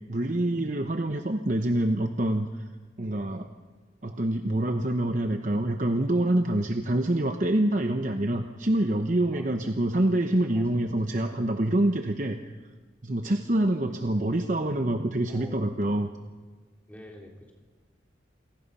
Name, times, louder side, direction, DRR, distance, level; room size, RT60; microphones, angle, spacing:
voice 1, 0.1-2.6 3.0-3.5 4.0-12.6 13.0-16.1, right 1 dB, 45° right, 5 dB, 1.0 m, -26 dB
voice 2, 9.3-9.7 10.5-10.8 13.9-14.2 15.3-15.6 16.9-17.5, equal, 10° left, 0 dB, 3.2 m, -47 dB
28.5 x 18.5 x 5.6 m, 1.4 s
head